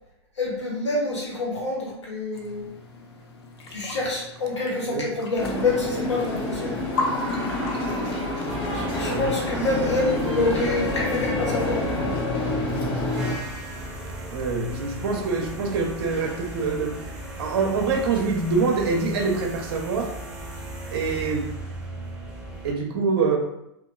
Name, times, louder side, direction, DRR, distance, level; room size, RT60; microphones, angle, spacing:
voice 1, 0.3-2.6 3.7-6.8 8.6-12.1, left 2 dB, 80° left, -5 dB, 1.1 m, -27 dB
sound 1, 2.3-9.7, left 3 dB, 60° left, 0.5 m, -37 dB
sound 2, 5.4-13.3, left 2 dB, 45° left, 1.0 m, -28 dB
sound 3, 8.5-22.7, right 1 dB, 5° right, 0.8 m, -37 dB
voice 2, 14.3-17.0 17.4-20.1 20.9-21.5 22.6-23.4, right 4 dB, 55° right, 2 dB, 0.5 m, -25 dB
2.8 x 2.2 x 2.2 m, 0.82 s
figure-of-eight pair, 105°, 15 cm